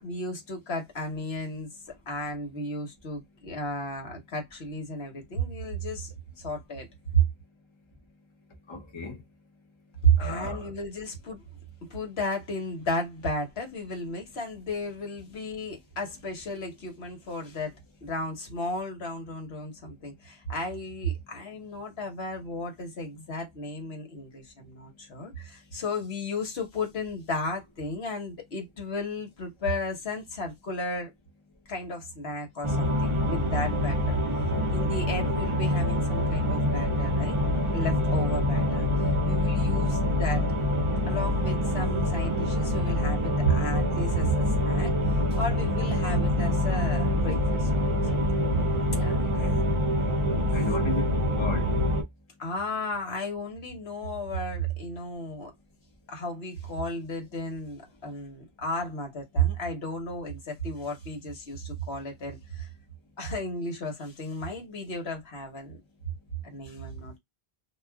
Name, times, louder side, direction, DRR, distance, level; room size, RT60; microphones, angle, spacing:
voice 1, 0.0-1.7 2.1-6.9 7.1-7.2 10.0-11.4 11.8-17.7 18.0-31.1 31.7-34.1 34.7-37.4 37.7-40.4 41.1-44.9 45.3-48.4 48.9-49.5 50.4-50.5 52.4-55.5 56.1-62.7 63.2-65.8 66.4-67.2, right 1 dB, 80° left, 1.4 m, -33 dB
voice 2, 8.7-9.2 10.2-10.7 49.4-49.6 50.5-51.7, left 2 dB, 30° left, 0.8 m, -34 dB
sound 1, 32.6-52.0, left 1 dB, 35° right, 0.7 m, -25 dB
2.6 x 2.4 x 3.4 m
omnidirectional pair, 1.0 m